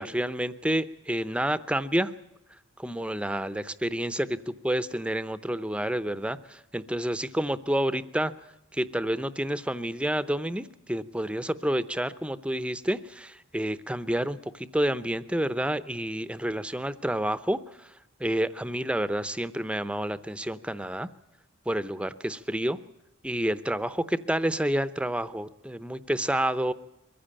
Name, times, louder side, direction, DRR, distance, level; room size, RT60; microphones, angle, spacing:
voice 1, 0.0-2.1 2.8-8.3 8.7-17.6 18.2-21.1 21.7-22.8 23.2-26.7, right 1 dB, 5° right, 14 dB, 0.7 m, -29 dB
23.0 x 15.5 x 8.9 m, 0.91 s
head